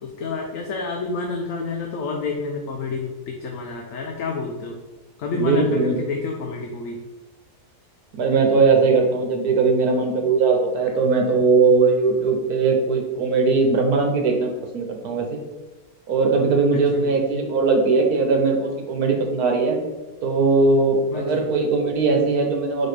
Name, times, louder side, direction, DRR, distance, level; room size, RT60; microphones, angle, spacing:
voice 1, 0.0-4.8 5.2-7.0 16.9-17.2 21.1-21.5, left 4 dB, 65° left, 1 dB, 1.0 m, -29 dB
voice 2, 5.3-6.0 8.2-15.4 16.1-19.8 20.2-22.9, right 4 dB, 80° right, 3 dB, 1.5 m, -19 dB
4.8 x 4.1 x 5.0 m, 1.1 s
omnidirectional pair, 1.6 m